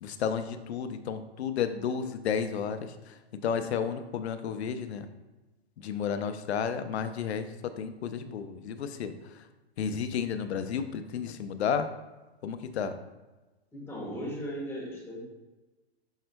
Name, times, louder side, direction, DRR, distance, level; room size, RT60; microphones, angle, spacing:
voice 1, 0.0-5.1 5.8-9.4 9.8-11.9 12.4-12.9, left 7 dB, 80° left, 10 dB, 0.6 m, -32 dB
voice 2, 13.7-15.2, equal, 10° left, -4 dB, 1.2 m, -37 dB
5.5 x 4.3 x 2.2 m, 1.2 s
hypercardioid pair, 140°, 32 cm